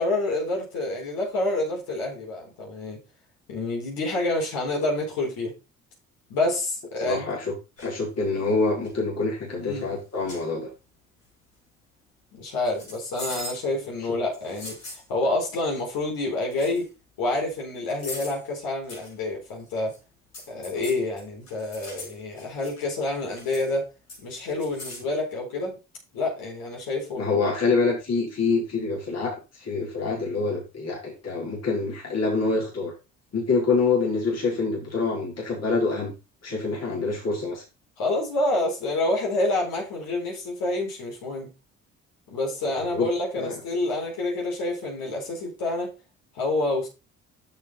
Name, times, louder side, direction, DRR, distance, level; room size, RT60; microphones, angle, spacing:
voice 1, 0.0-3.0 3.5-5.5 6.3-7.2 9.6-9.9 12.3-14.8 15.1-16.9 17.2-19.9 20.5-23.8 24.2-25.8 26.1-27.5 38.0-41.5 42.3-45.9 46.3-46.9, left 2 dB, 65° left, 4.7 m, -28 dB
voice 2, 7.0-7.5 7.8-10.7 27.1-32.9 33.3-36.1 36.4-37.6 42.9-43.1 43.4-43.6, left 4 dB, 40° left, 4.1 m, -26 dB
sound 1, 7.8-8.0 8.6-8.9 9.8-9.9 10.3-10.5 12.6-13.7 14.3-15.1 16.2-16.3 16.5-16.9 17.9-18.4 18.9-19.1 19.5-20.0 20.3-22.8 23.1-23.7 24.1-25.0, left 1 dB, 90° left, 6.1 m, -40 dB
7.9 x 7.1 x 4.2 m
hypercardioid pair, 55°, 39 cm